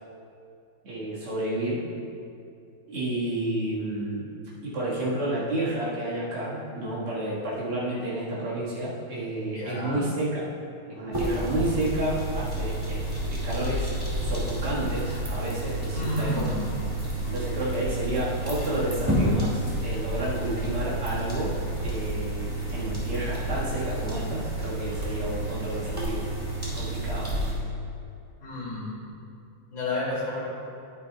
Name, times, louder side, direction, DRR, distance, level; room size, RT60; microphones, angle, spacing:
voice 1, 0.8-1.8 2.9-4.3 4.6-10.4 10.9-13.9 14.2-16.5 17.2-21.6 21.8-26.3 26.7-27.3, right 1 dB, 85° right, -8 dB, 2.7 m, -30 dB
voice 2, 9.5-10.0 15.9-16.7 17.2-17.3 28.4-28.9 29.7-30.4, left 1 dB, 40° left, -7 dB, 2.7 m, -31 dB
sound 1, 11.1-27.5, right 1 dB, 10° right, 1.8 m, -30 dB
11.0 x 9.8 x 2.3 m, 2.5 s
omnidirectional pair, 2.3 m